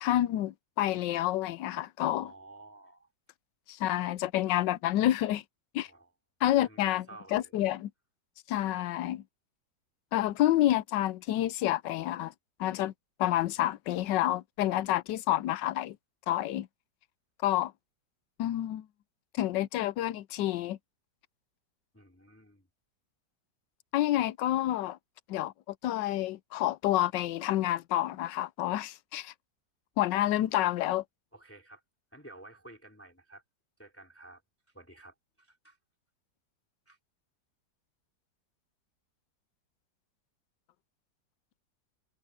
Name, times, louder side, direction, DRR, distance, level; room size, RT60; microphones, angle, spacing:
voice 1, 0.0-2.3 3.7-5.4 5.7-5.9 6.4-7.1 7.3-7.9 8.5-9.2 10.1-12.3 12.6-12.9 13.2-16.0 16.3-16.7 17.4-17.7 18.4-18.9 19.3-20.8 23.9-25.0 25.3-29.3 30.0-31.0, left 14 dB, 80° left, 1.3 m, -28 dB
voice 2, 2.0-3.1 5.8-6.1 6.5-7.5 21.9-22.7 31.3-31.8 32.1-33.4 33.8-34.4 34.7-35.8 36.9-37.0, right 2 dB, 5° left, 2.9 m, -52 dB
omnidirectional pair, 1.9 m